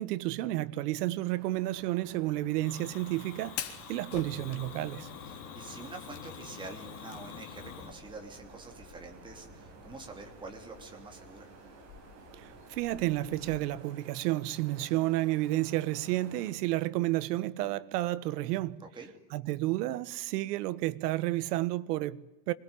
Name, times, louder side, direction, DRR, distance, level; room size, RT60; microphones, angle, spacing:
voice 1, 0.0-5.1 12.3-18.8 19.3-22.5, right 16 dB, 75° right, 1.4 m, -31 dB
sound 1, 1.3-16.5, right 5 dB, 35° right, 5.3 m, -54 dB
Fire, 2.6-7.9, left 10 dB, 65° left, 3.7 m, -43 dB
voice 2, 5.2-11.5 18.8-19.1, right 3 dB, 10° right, 3.1 m, -46 dB
sound 2, 7.6-13.6, left 7 dB, 45° left, 4.2 m, -56 dB
26.5 x 20.5 x 9.8 m
supercardioid pair, 175°, 48 cm